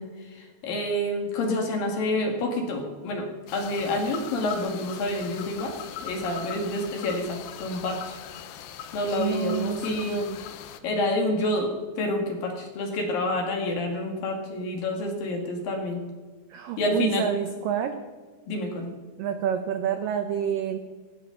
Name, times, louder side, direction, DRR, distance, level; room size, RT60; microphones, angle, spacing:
voice 1, 0.0-3.2 3.5-5.7 6.0-8.2 8.9-10.2 10.8-16.0 16.8-17.3 18.5-18.9, left 1 dB, 60° left, 2 dB, 3.3 m, -28 dB
sound 1, 3.5-10.8, left 9 dB, 85° left, 3.2 m, -40 dB
voice 2, 9.2-9.8 10.1-10.4 16.5-17.9 19.2-20.8, right 9 dB, 85° right, 7 dB, 1.9 m, -28 dB
18.0 x 16.0 x 3.9 m, 1.4 s
omnidirectional pair, 5.2 m